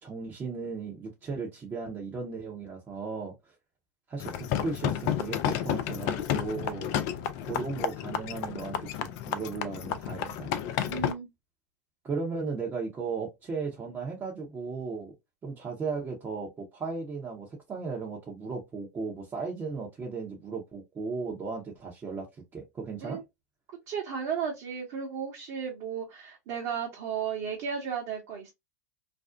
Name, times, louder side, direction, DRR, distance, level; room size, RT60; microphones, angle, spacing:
voice 1, 0.0-3.5 4.1-6.9 7.4-10.5 12.0-15.1 15.4-22.3 22.5-23.2, right 4 dB, 25° right, 0.8 m, -36 dB
sound 1, 4.2-11.1, left 10 dB, 50° left, 0.4 m, -31 dB
voice 2, 10.9-11.3 23.0-23.2 23.9-28.5, right 7 dB, 50° right, 1.0 m, -34 dB
2.5 x 2.0 x 2.4 m
hypercardioid pair, 95°, 9 cm